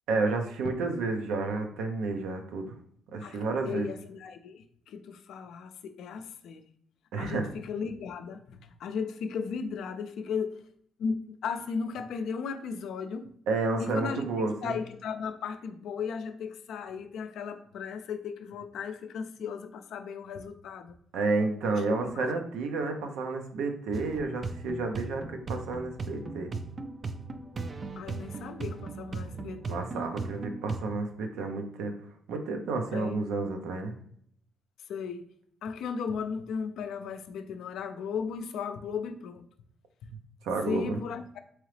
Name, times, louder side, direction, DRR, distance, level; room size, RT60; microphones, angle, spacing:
voice 1, 0.1-2.7 3.1-3.9 7.1-7.5 13.5-14.8 21.1-26.5 29.7-31.9 32.3-33.9 40.4-41.0, right 3 dB, 85° right, 5 dB, 0.6 m, -31 dB
voice 2, 3.2-6.6 7.2-10.6 11.0-13.3 13.8-21.0 21.6-22.3 28.0-29.9 32.9-33.2 34.9-35.3 35.6-39.4 40.7-41.4, left 6 dB, 75° left, 8 dB, 0.4 m, -36 dB
sound 1, 23.9-30.8, right 3 dB, 40° right, 0.4 m, -38 dB
3.8 x 3.0 x 3.2 m, 0.66 s
cardioid pair, 90°, 0 cm